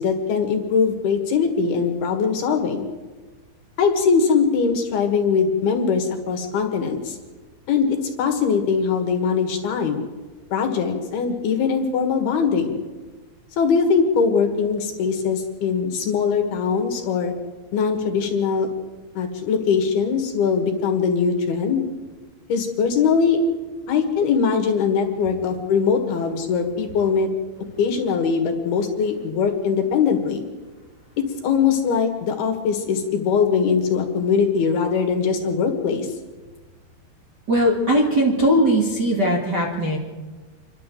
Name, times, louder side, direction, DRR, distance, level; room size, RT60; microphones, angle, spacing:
voice 1, 0.0-2.9 3.8-7.2 7.7-10.0 10.5-12.8 13.6-17.3 17.7-18.7 19.1-21.8 22.5-23.4 23.9-27.3 27.8-30.4 31.4-36.1, left 6 dB, 65° left, 4 dB, 3.5 m, -21 dB
voice 2, 37.5-40.0, equal, 30° right, -3 dB, 2.3 m, -19 dB
28.0 x 12.0 x 7.7 m, 1.3 s
omnidirectional pair, 5.2 m